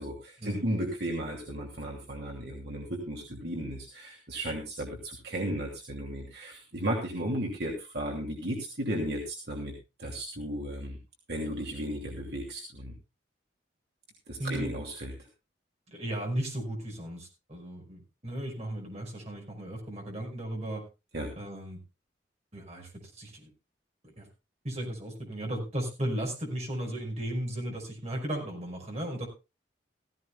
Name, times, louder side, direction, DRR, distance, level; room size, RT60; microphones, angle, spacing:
voice 1, 0.0-11.0 11.3-12.9 14.3-15.1 21.1-21.3, right 1 dB, 60° right, 0 dB, 2.7 m, -34 dB
voice 2, 14.4-14.7 15.9-20.9 21.4-21.8 22.5-23.5 24.0-24.3 24.6-29.3, right 1 dB, 35° right, 1 dB, 5.4 m, -35 dB
16.0 x 15.5 x 2.3 m, 0.28 s
head